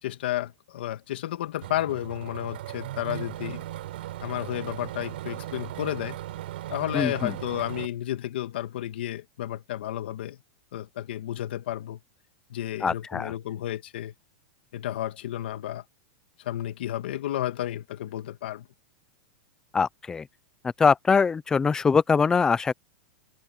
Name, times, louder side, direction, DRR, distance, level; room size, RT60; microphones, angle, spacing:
voice 1, 0.0-3.6 4.2-6.2 6.7-10.4 10.7-12.0 12.5-14.1 14.7-15.8 16.4-18.7, left 13 dB, 75° left, 1.8 m, -32 dB
sound 1, 1.6-7.9, right 14 dB, 70° right, 7.6 m, -37 dB
voice 2, 6.9-7.4 12.8-13.3 19.7-20.3 20.8-22.7, left 5 dB, 10° left, 0.6 m, -23 dB
supercardioid pair, 155°, 6 cm